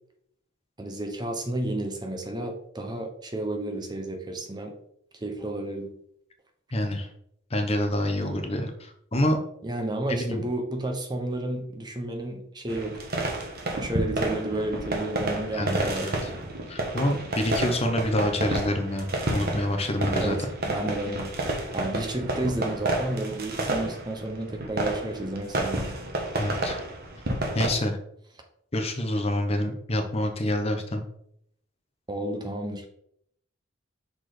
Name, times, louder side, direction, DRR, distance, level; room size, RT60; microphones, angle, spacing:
voice 1, 0.8-4.7 5.1-5.9 9.6-13.0 13.7-16.4 20.2-20.4 20.6-21.3 21.7-25.9 32.1-32.9, right 1 dB, 20° right, 4 dB, 0.7 m, -31 dB
voice 2, 6.7-7.1 7.5-8.7 9.1-9.4 10.1-10.4 15.5-16.1 16.7-19.1 19.3-20.4 26.4-26.8 27.5-28.0 28.7-31.0, left 1 dB, 30° left, 5 dB, 0.9 m, -27 dB
sound 1, 12.7-27.7, right 1 dB, 50° right, 1.2 m, -30 dB
6.0 x 4.3 x 4.9 m, 0.71 s
head